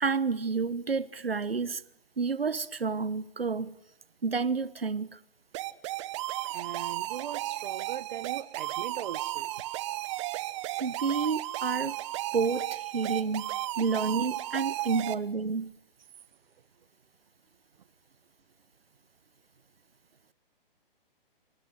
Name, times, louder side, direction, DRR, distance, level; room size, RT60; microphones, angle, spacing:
voice 1, 0.0-1.8 2.2-3.7 4.2-5.2 10.8-12.0 12.3-15.7, right 5 dB, 80° right, 1.2 m, -30 dB
sound 1, 5.5-15.2, right 16 dB, 30° right, 1.1 m, -34 dB
voice 2, 6.5-9.5, right 9 dB, 50° right, 1.3 m, -40 dB
27.0 x 26.5 x 8.0 m
figure-of-eight pair, 130°, 29 cm